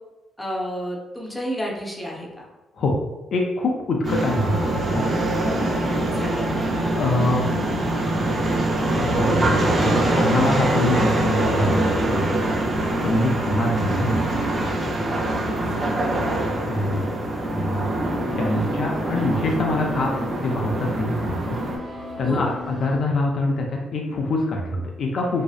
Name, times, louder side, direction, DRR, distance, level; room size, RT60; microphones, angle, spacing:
voice 1, 0.4-2.3 6.1-6.6 12.6-12.8 14.9-15.2 15.7-16.0 22.2-22.5, equal, 5° left, -2 dB, 0.6 m, -31 dB
voice 2, 3.3-5.1 7.0-7.5 8.9-12.4 13.0-14.3 16.7-17.1 17.5-17.9 18.4-21.6 22.1-25.4, left 2 dB, 60° left, 0 dB, 0.4 m, -24 dB
sound 1, 4.0-21.8, right 1 dB, 40° right, 0.5 m, -24 dB
sound 2, 4.1-10.0, right 1 dB, 75° right, 1.1 m, -36 dB
sound 3, 18.0-23.0, left 2 dB, 15° right, 0.9 m, -36 dB
2.6 x 2.0 x 2.3 m, 1.1 s
cardioid pair, 90°, 0 cm